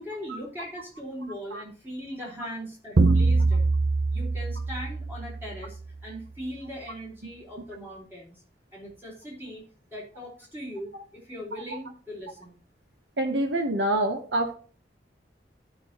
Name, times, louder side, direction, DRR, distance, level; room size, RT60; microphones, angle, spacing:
voice 1, 0.0-3.6 4.1-8.4 8.7-9.6 9.9-12.6, equal, 15° right, -4 dB, 3.4 m, -39 dB
sound 1, 3.0-5.7, right 3 dB, 65° right, 0.6 m, -23 dB
voice 2, 13.2-14.5, right 1 dB, 90° right, 3 dB, 1.0 m, -26 dB
14.5 x 6.0 x 2.9 m, 0.40 s
head